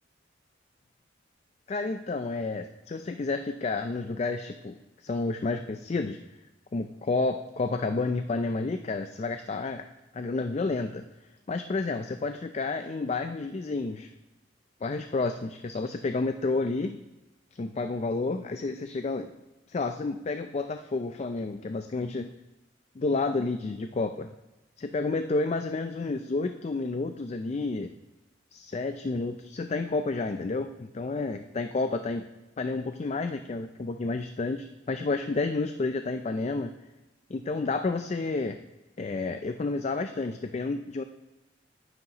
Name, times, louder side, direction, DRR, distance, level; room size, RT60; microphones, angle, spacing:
voice 1, 1.7-6.2 6.7-9.9 10.1-11.0 11.5-14.1 14.8-17.0 17.6-19.3 19.7-22.3 23.0-24.3 24.8-27.9 28.5-32.2 32.6-36.7 37.3-38.6 39.0-41.0, left 3 dB, 35° left, 7 dB, 0.4 m, -30 dB
10.0 x 9.5 x 2.9 m, 1.1 s
head